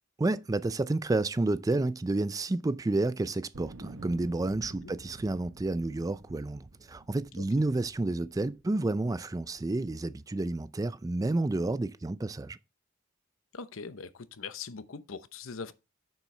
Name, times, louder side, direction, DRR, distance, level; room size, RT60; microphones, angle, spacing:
voice 1, 0.2-12.6, right 2 dB, 15° right, 0.3 m, -30 dB
sound 1, 3.5-8.8 9.3-10.1, right 2 dB, 70° right, 0.9 m, -50 dB
voice 2, 13.5-15.7, left 5 dB, 85° left, 0.8 m, -41 dB
9.2 x 7.4 x 3.3 m
head